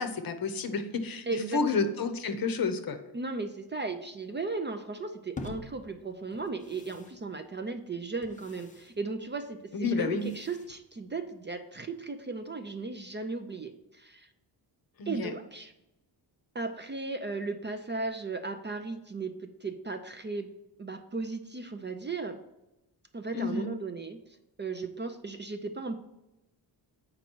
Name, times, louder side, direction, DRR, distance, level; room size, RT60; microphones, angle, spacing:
voice 1, 0.0-3.0 9.7-10.3 15.0-15.3 23.3-23.7, left 4 dB, 55° left, 8 dB, 0.9 m, -30 dB
voice 2, 1.3-1.9 3.1-14.3 15.1-15.7 16.5-20.5 20.8-22.4 23.1-24.2 24.6-25.9, right 3 dB, 25° right, 6 dB, 0.4 m, -36 dB
sound 1, 5.4-11.6, left 3 dB, 20° left, 0.6 m, -48 dB
8.2 x 5.2 x 4.5 m, 0.92 s
wide cardioid pair, 160°, 43 cm